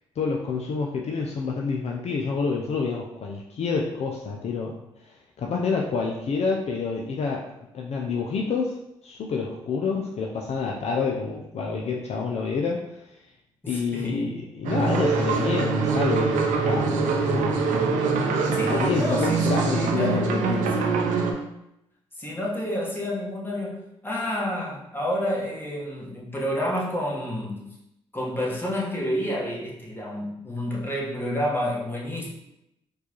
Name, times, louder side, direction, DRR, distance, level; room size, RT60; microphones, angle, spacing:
voice 1, 0.2-4.7 5.0-7.5 7.7-8.8 9.0-12.8 13.7-17.7 18.7-20.7, left 4 dB, 55° left, -1 dB, 0.5 m, -28 dB
voice 2, 13.6-14.3 18.5-19.4 19.7-21.3 22.2-23.8 24.0-27.6 28.1-32.3, left 1 dB, 15° left, -4 dB, 1.3 m, -29 dB
sound 1, 14.6-21.3, right 4 dB, 80° right, 0.5 m, -24 dB
4.5 x 2.4 x 3.0 m, 0.84 s
supercardioid pair, 55°, 13 cm